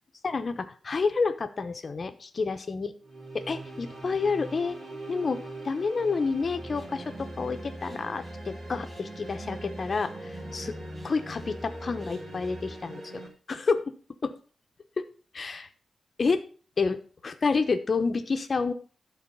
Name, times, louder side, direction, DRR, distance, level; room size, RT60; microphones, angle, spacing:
voice 1, 0.2-2.9 3.3-4.8 5.1-10.7 11.0-13.2 13.5-13.9 14.2-14.3 15.0-15.1 15.3-15.6 16.2-16.4 16.8-17.0 17.2-18.7, left 4 dB, 40° left, 7 dB, 0.9 m, -29 dB
sound 1, 3.0-13.3, right 2 dB, 55° right, 3.0 m, -42 dB
sound 2, 6.4-12.8, equal, 10° right, 1.8 m, -44 dB
12.5 x 4.1 x 5.5 m, 0.40 s
wide cardioid pair, 150°, 0 cm